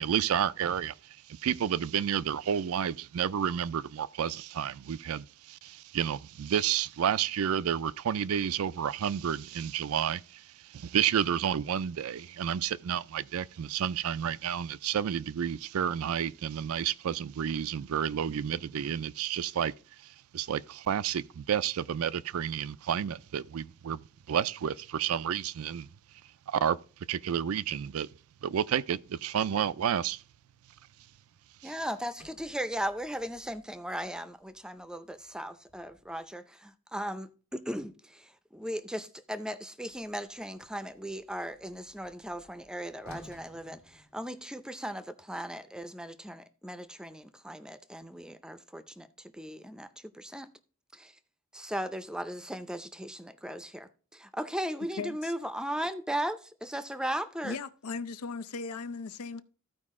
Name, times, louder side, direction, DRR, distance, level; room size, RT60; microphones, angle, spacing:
voice 1, 0.0-19.7 20.0-25.9 26.5-26.8 27.1-28.1 28.4-30.2 31.6-31.7, right 8 dB, 75° right, 0.4 m, -30 dB
voice 2, 31.6-49.9 50.1-50.5 50.9-51.1 51.5-57.6, equal, 5° right, 0.5 m, -37 dB
Sliding door, 32.0-36.3 39.8-44.7, left 1 dB, 75° left, 1.5 m, -57 dB
voice 3, 55.0-55.3 57.4-59.4, left 4 dB, 90° left, 0.6 m, -37 dB
14.0 x 4.7 x 3.6 m
head